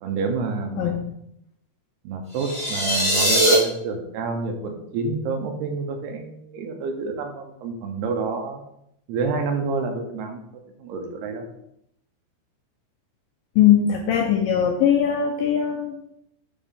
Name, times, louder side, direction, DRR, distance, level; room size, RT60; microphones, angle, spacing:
voice 1, 0.0-0.9 2.0-8.6 9.1-10.4 10.8-11.5, right 4 dB, 80° right, 4 dB, 2.9 m, -28 dB
sound 1, 2.3-3.5, equal, 5° right, 0.9 m, -21 dB
voice 2, 13.6-16.0, left 9 dB, 80° left, 2 dB, 2.1 m, -20 dB
7.2 x 4.8 x 3.6 m, 0.77 s
omnidirectional pair, 4.7 m